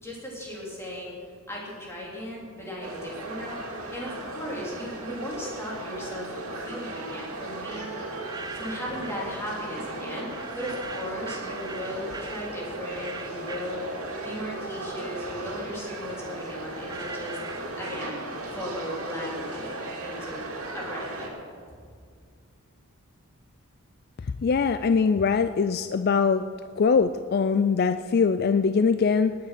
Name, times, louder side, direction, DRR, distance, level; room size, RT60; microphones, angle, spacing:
voice 1, 0.0-8.2 8.5-17.4 17.8-18.2 18.5-20.5 20.7-21.4, equal, 10° left, -5 dB, 3.6 m, -37 dB
sound 1, 2.8-21.3, right 2 dB, 85° right, 2.4 m, -36 dB
sound 2, 8.0-9.3 10.3-14.5 14.9-18.6, right 3 dB, 20° right, 0.5 m, -42 dB
voice 2, 24.4-26.4 26.8-29.4, left 5 dB, 45° left, 11 dB, 0.4 m, -22 dB
18.5 x 9.5 x 6.0 m, 2.1 s
head